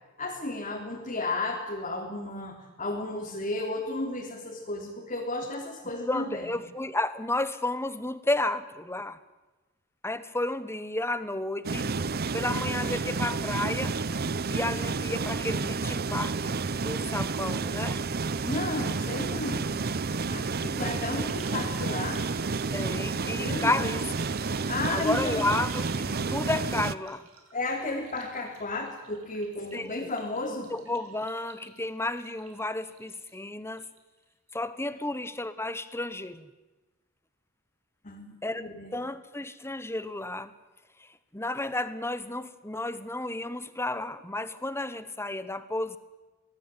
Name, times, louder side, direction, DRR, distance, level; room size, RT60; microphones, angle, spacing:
voice 1, 0.2-6.5 18.4-19.8 20.1-22.2 23.2-23.9 24.7-25.4 27.5-30.7 38.0-38.3 38.6-38.9, left 2 dB, 35° left, -1 dB, 3.5 m, -33 dB
voice 2, 6.0-9.2 10.0-11.9 12.3-14.0 14.5-18.0 22.7-24.0 24.9-27.2 29.7-30.1 30.5-33.9 34.5-36.5 38.4-40.5 41.0-41.1 41.3-46.0, left 2 dB, 10° left, 13 dB, 1.3 m, -32 dB
sound 1, 11.6-26.9, right 4 dB, 45° right, 0.8 m, -30 dB
sound 2, 18.3-18.4 18.7-33.4 33.7-34.2 34.5-34.6, right 5 dB, 75° right, 4.7 m, -51 dB
25.0 x 19.0 x 9.3 m, 1.1 s
head